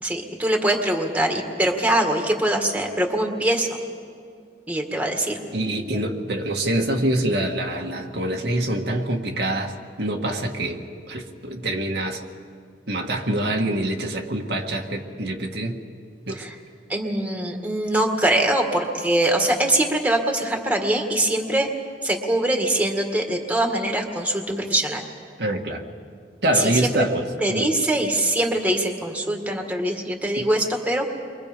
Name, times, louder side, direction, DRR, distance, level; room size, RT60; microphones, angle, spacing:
voice 1, 0.0-3.7 4.7-5.4 16.4-16.6 16.9-21.7 22.0-25.0 26.5-26.9 27.4-31.1, right 1 dB, 10° right, 2 dB, 1.9 m, -23 dB
voice 2, 5.5-10.8 11.1-12.2 12.9-15.8 16.3-16.4 25.4-25.8 26.4-27.7 30.4-30.5, right 1 dB, 70° right, 1 dB, 1.7 m, -25 dB
30.0 x 23.5 x 5.2 m, 2.2 s
head